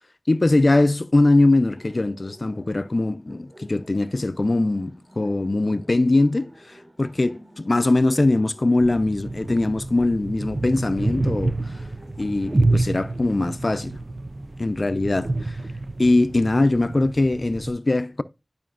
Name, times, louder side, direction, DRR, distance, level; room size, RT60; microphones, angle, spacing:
voice 1, 0.3-11.8 12.2-14.0 14.6-15.6 16.0-18.2, left 2 dB, 60° left, 0.5 m, -21 dB
Laughter, 1.8-12.7, equal, 40° right, 4.2 m, -50 dB
sound 1, 8.8-17.7, right 2 dB, 60° right, 0.4 m, -28 dB
11.0 x 5.1 x 2.4 m
wide cardioid pair, 55°, 0 cm